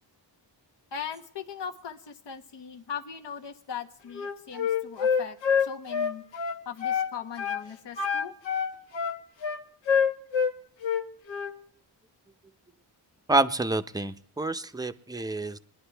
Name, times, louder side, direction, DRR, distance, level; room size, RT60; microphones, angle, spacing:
voice 1, 0.9-6.2 6.6-8.3, left 7 dB, 70° left, 5 dB, 1.3 m, -39 dB
Wind instrument woodwind instrument, 4.1-7.1 7.4-7.6 8.0-10.5 10.8-11.5, left 7 dB, 85° left, 1.3 m, -26 dB
voice 2, 13.3-15.6, right 2 dB, 10° right, 9 dB, 0.6 m, -27 dB
22.5 x 10.5 x 3.4 m, 0.66 s
cardioid pair, 95°, 44 cm